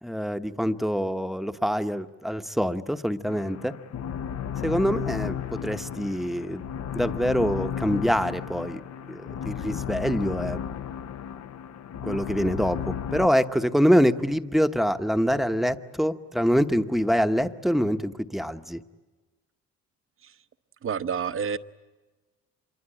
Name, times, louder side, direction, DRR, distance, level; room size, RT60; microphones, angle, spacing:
voice 1, 0.0-3.8 4.6-6.6 6.9-8.8 9.1-10.6 12.0-18.8, equal, ahead, 8 dB, 1.0 m, -25 dB
sound 1, 3.3-13.3, left 8 dB, 60° left, 0.9 m, -34 dB
voice 2, 20.8-21.6, right 7 dB, 45° right, 12 dB, 0.9 m, -28 dB
26.0 x 23.5 x 8.9 m, 1.2 s
cardioid pair, 85°, 30 cm